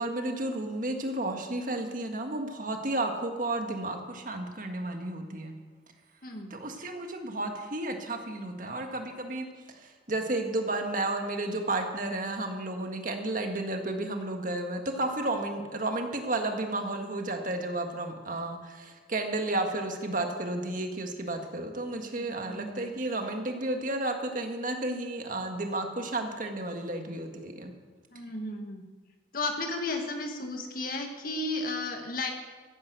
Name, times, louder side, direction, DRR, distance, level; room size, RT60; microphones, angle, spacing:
voice 1, 0.0-5.5 6.5-27.7, right 2 dB, 45° right, 4 dB, 1.7 m, -32 dB
voice 2, 6.2-6.6 22.1-22.9 28.1-28.8 29.3-32.3, left 2 dB, 50° left, 3 dB, 1.7 m, -34 dB
14.5 x 11.0 x 6.3 m, 1.4 s
head